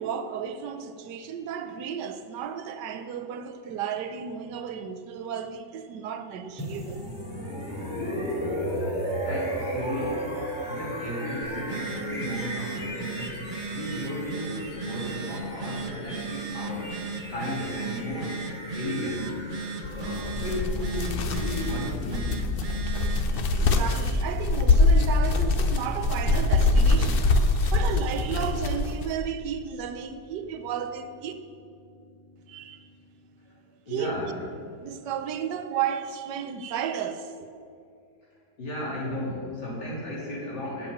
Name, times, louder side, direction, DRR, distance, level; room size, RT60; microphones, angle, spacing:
voice 1, 0.0-7.0 23.3-31.3 32.5-32.8 33.9-34.4 34.8-37.5, right 8 dB, 85° right, 1.4 m, -33 dB
sound 1, 6.6-22.5, equal, 5° right, 2.2 m, -36 dB
voice 2, 9.2-10.3 10.6-13.4 13.7-17.0 17.3-18.4 18.7-19.4 19.8-22.6 27.6-28.0 31.8-34.4 38.6-40.9, left 1 dB, 80° left, 3.5 m, -35 dB
Telephone, 11.4-23.4, right 4 dB, 50° right, 0.6 m, -37 dB
sound 2, 19.8-29.1, left 3 dB, 55° left, 0.6 m, -24 dB
7.8 x 7.4 x 8.5 m
omnidirectional pair, 1.8 m